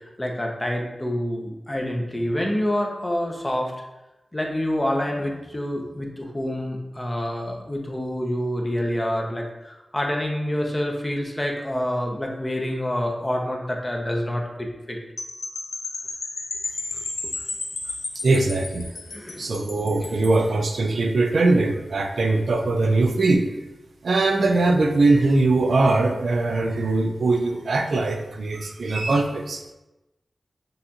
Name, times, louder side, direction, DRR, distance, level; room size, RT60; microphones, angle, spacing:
voice 1, 0.2-3.7 4.3-15.0 16.9-17.3 19.1-19.5 20.0-20.1, left 1 dB, 20° left, 0 dB, 0.8 m, -27 dB
sound 1, 15.2-20.5, left 3 dB, 80° left, 0.6 m, -33 dB
voice 2, 18.2-18.9 19.4-23.5 24.0-29.6, right 2 dB, 75° right, 4 dB, 0.5 m, -21 dB
6.5 x 2.5 x 2.9 m, 0.99 s
wide cardioid pair, 70°, 0 cm